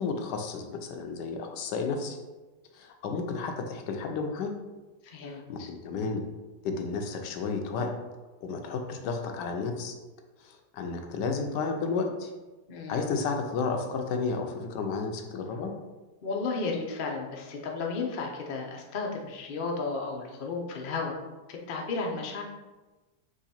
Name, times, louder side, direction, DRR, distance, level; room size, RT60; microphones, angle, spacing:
voice 1, 0.0-2.2 2.7-4.5 5.2-6.2 6.6-7.9 8.4-9.9 10.4-12.3 12.9-15.7, left 4 dB, 85° left, 4 dB, 1.2 m, -32 dB
voice 2, 5.0-5.7 12.7-13.0 16.2-21.2 21.5-22.4, left 4 dB, 60° left, 0 dB, 0.5 m, -33 dB
3.8 x 3.1 x 4.1 m, 1.2 s
omnidirectional pair, 1.8 m